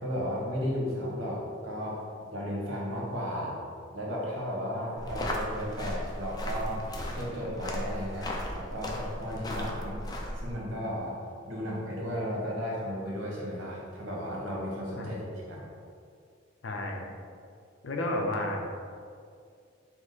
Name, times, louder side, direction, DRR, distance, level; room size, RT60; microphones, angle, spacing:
voice 1, 0.0-2.0 2.3-3.5 3.9-6.8 7.1-10.0 10.4-11.1 11.5-15.7, equal, 70° right, -4 dB, 1.1 m, -34 dB
sound 1, 5.0-10.5, left 1 dB, 20° left, 0.4 m, -36 dB
sound 2, 5.1-5.6 6.0-6.6 7.0-7.3 7.9-8.3, equal, ahead, 1.3 m, -48 dB
voice 2, 16.6-17.1 17.8-18.6, left 1 dB, 70° left, 1 dB, 0.5 m, -32 dB
4.8 x 2.1 x 4.0 m, 2.3 s
head